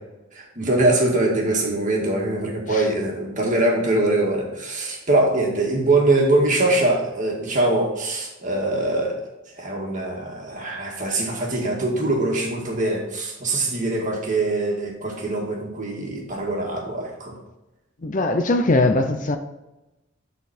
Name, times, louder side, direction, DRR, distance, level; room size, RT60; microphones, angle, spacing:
voice 1, 0.3-9.2 9.5-17.4, right 2 dB, 40° right, 1.9 m, -23 dB
voice 2, 18.0-19.4, left 2 dB, 40° left, 0.6 m, -21 dB
12.0 x 4.2 x 4.3 m
head